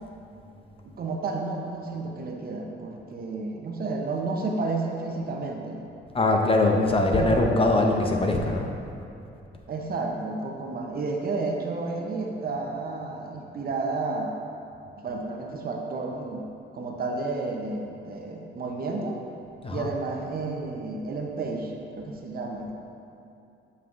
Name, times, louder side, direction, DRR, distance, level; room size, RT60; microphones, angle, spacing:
voice 1, 0.8-5.8 7.1-7.6 9.7-14.3 15.0-16.4 16.7-19.2 19.7-22.7, right 3 dB, 50° right, 1 dB, 0.8 m, -31 dB
voice 2, 6.1-8.7 19.6-19.9, left 2 dB, 30° left, 1 dB, 0.6 m, -22 dB
8.0 x 5.5 x 2.5 m, 2.7 s
cardioid pair, 90°, 20 cm